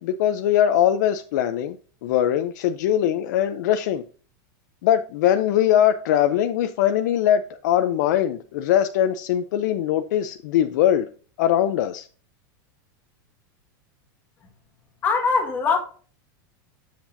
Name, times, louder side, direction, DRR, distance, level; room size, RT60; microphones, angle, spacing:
voice 1, 0.0-1.8 2.0-4.0 4.8-11.1 11.4-12.1, left 11 dB, 55° left, 0.5 m, -21 dB
voice 2, 15.0-15.8, left 5 dB, 15° left, 1.6 m, -21 dB
7.5 x 7.1 x 2.6 m
supercardioid pair, 170°, 11 cm